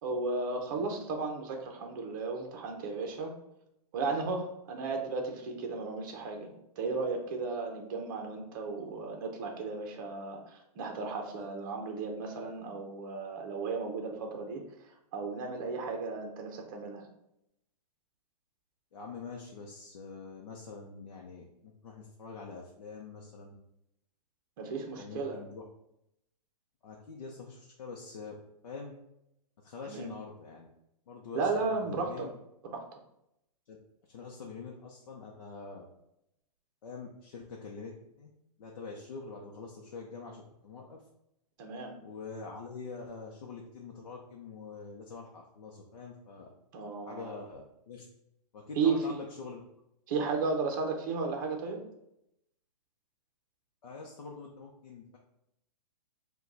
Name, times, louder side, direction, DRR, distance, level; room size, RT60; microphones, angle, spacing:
voice 1, 0.0-3.3 3.9-14.7 15.1-17.1 24.6-25.4 29.9-30.1 31.3-32.3 32.7-32.9 41.6-41.9 46.7-47.3 48.8-49.2 50.1-51.8, right 4 dB, 30° right, 2 dB, 0.7 m, -34 dB
voice 2, 18.9-23.6 24.9-25.6 26.8-28.4 28.6-28.9 29.6-30.7 31.1-32.3 33.7-33.8 34.1-35.8 36.8-38.3 38.6-41.0 42.0-46.5 47.1-48.1 48.5-49.6 53.8-55.2, left 4 dB, 55° left, -1 dB, 0.8 m, -45 dB
4.9 x 2.3 x 4.0 m, 0.81 s
hypercardioid pair, 170°, 21 cm